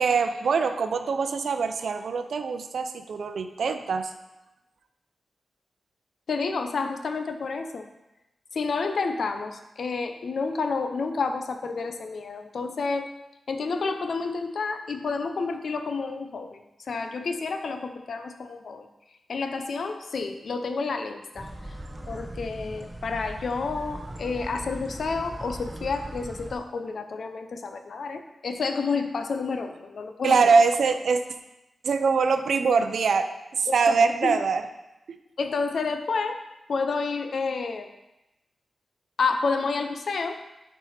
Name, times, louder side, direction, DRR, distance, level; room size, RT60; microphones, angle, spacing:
voice 1, 0.0-4.1 30.2-31.2 31.8-34.6 35.1-35.2, right 5 dB, 80° right, 8 dB, 0.6 m, -23 dB
voice 2, 6.3-7.9 8.5-13.1 13.5-16.6 16.9-18.9 19.3-21.5 22.1-30.5 33.9-34.4 35.4-36.4 36.7-37.9 39.2-40.4, left 4 dB, 70° left, 7 dB, 0.7 m, -30 dB
sound 1, 21.3-26.6, right 1 dB, 20° right, 0.9 m, -39 dB
8.8 x 4.8 x 4.3 m, 0.96 s
cardioid pair, 65°, 0 cm